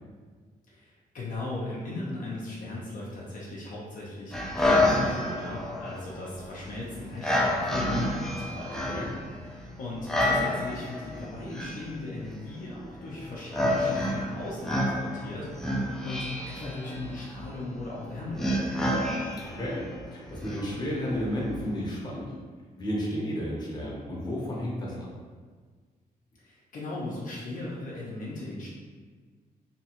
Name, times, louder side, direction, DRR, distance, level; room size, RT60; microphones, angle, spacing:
voice 1, 0.7-8.8 9.5-18.8 26.4-28.7, left 2 dB, 60° left, -5 dB, 0.6 m, -38 dB
sound 1, 4.3-22.0, left 1 dB, 5° left, 0.4 m, -30 dB
voice 2, 8.7-9.1 19.5-22.3 22.8-25.1, equal, 25° left, -5 dB, 0.8 m, -32 dB
2.8 x 2.2 x 2.9 m, 1.5 s
cardioid pair, 110°, 16 cm